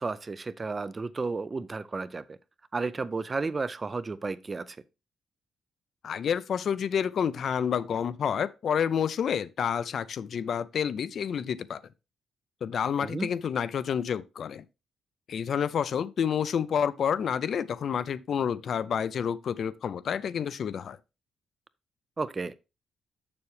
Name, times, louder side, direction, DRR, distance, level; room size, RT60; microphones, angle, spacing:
voice 1, 0.0-2.4 2.7-4.7 13.0-13.3 22.2-22.5, right 4 dB, 20° right, 0.4 m, -32 dB
voice 2, 6.0-11.8 12.6-14.6 15.3-21.0, left 7 dB, 50° left, 0.4 m, -29 dB
6.9 x 6.9 x 3.3 m
cardioid pair, 165°, 0 cm